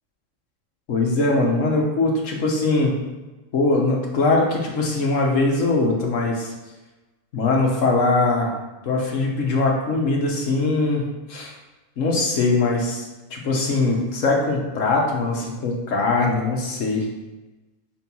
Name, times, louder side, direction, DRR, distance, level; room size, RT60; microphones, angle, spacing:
voice 1, 0.9-2.9 3.5-6.5 7.3-8.5 8.8-11.5 12.0-13.0 13.3-17.1, left 3 dB, 80° left, -1 dB, 1.5 m, -21 dB
4.9 x 4.7 x 5.4 m, 1.1 s
omnidirectional pair, 1.3 m